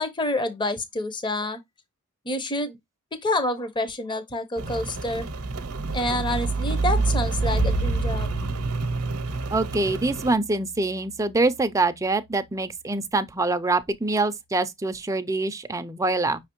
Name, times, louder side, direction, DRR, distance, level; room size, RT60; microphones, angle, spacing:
voice 1, 0.0-1.6 2.2-2.8 3.1-5.3 5.9-8.3, left 1 dB, 20° left, 0.7 m, -28 dB
Rain, 4.6-10.3, right 3 dB, 70° right, 0.7 m, -27 dB
Bowed string instrument, 7.6-12.0, left 1 dB, 65° left, 0.7 m, -37 dB
voice 2, 9.5-16.4, right 2 dB, 15° right, 0.4 m, -25 dB
5.6 x 3.2 x 2.9 m
head